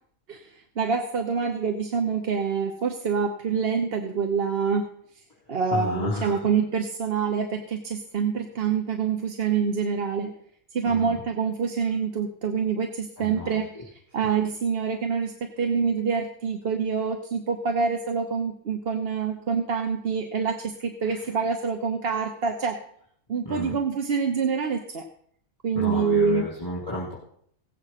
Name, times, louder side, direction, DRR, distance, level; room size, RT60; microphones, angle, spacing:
voice 1, 0.3-4.9 5.5-10.3 10.7-22.8 23.3-25.1 25.6-26.4, right 6 dB, 50° right, 5 dB, 1.0 m, -26 dB
voice 2, 5.7-6.5 10.9-11.2 13.2-13.8 21.0-21.2 23.4-23.7 25.7-27.1, left 1 dB, 15° left, -8 dB, 3.9 m, -32 dB
17.0 x 7.8 x 5.8 m, 0.66 s
omnidirectional pair, 1.4 m